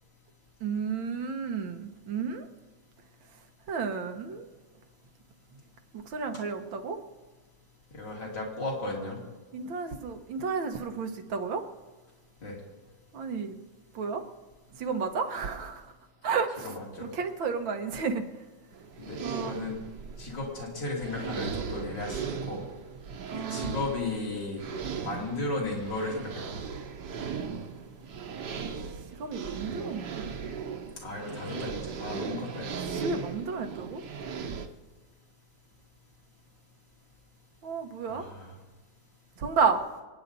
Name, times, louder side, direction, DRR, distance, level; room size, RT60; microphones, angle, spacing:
voice 1, 0.6-2.5 3.7-4.5 5.9-7.0 9.5-11.7 13.1-13.6 14.0-14.2 14.8-15.9 16.2-16.7 17.0-18.3 19.2-19.6 23.3-23.8 29.2-30.3 33.0-34.0 37.6-38.2 39.4-39.8, right 5 dB, 90° right, 6 dB, 1.9 m, -32 dB
voice 2, 7.9-9.2 12.4-12.6 16.6-17.1 19.0-19.8 20.2-22.6 23.3-24.7 25.0-26.5 31.0-32.7 38.1-38.5, left 2 dB, 70° left, -3 dB, 3.4 m, -35 dB
sound 1, 18.7-34.7, right 6 dB, 65° right, 1.5 m, -38 dB
26.5 x 9.1 x 4.1 m, 1.2 s
omnidirectional pair, 2.1 m